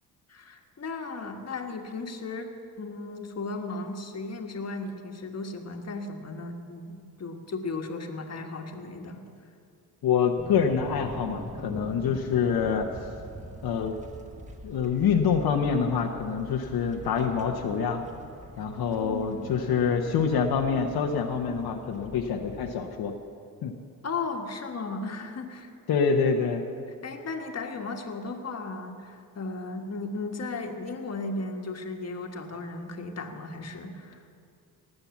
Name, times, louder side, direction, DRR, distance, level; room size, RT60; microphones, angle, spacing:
voice 1, 0.3-9.2 11.9-12.2 18.9-19.5 24.0-25.7 26.9-34.2, left 3 dB, 40° left, 4 dB, 1.5 m, -36 dB
voice 2, 10.0-12.9 13.6-14.0 14.6-18.0 18.6-23.1 23.6-23.7 25.9-26.7, left 6 dB, 75° left, 3 dB, 1.0 m, -26 dB
sound 1, 10.4-22.7, equal, 20° right, 1.6 m, -44 dB
19.0 x 7.8 x 7.1 m, 2.4 s
cardioid pair, 95°, 37 cm